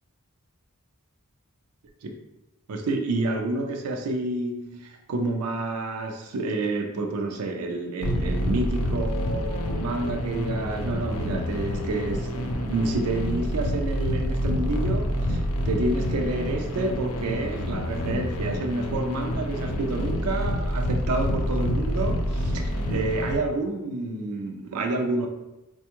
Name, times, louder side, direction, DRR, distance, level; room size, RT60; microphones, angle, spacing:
voice 1, 2.7-25.3, right 2 dB, 80° right, 0.4 m, -29 dB
sound 1, 8.0-23.4, equal, 85° left, 0.5 m, -28 dB
4.2 x 2.2 x 2.9 m
head